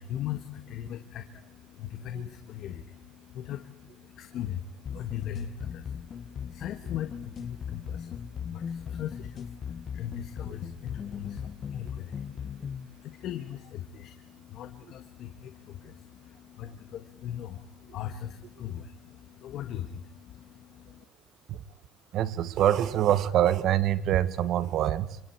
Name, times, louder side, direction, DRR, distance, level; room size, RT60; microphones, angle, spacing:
voice 1, 0.0-21.0, left 10 dB, 60° left, 8 dB, 1.5 m, -39 dB
sound 1, 4.9-12.9, left 7 dB, 35° left, 1.0 m, -38 dB
voice 2, 22.1-25.2, right 11 dB, 55° right, 16 dB, 1.1 m, -25 dB
28.0 x 25.0 x 4.6 m, 0.82 s
cardioid pair, 145°, 0 cm